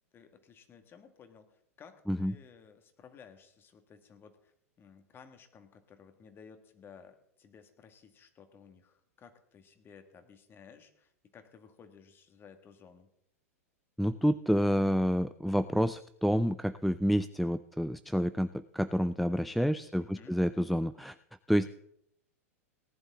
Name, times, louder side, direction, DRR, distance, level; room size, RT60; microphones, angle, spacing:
voice 1, 0.1-13.1 20.0-20.4, left 6 dB, 25° left, 8 dB, 1.8 m, -56 dB
voice 2, 14.0-21.1 21.5-21.7, equal, ahead, 12 dB, 0.4 m, -29 dB
18.5 x 11.0 x 3.7 m, 0.73 s
hypercardioid pair, 100°, 8 cm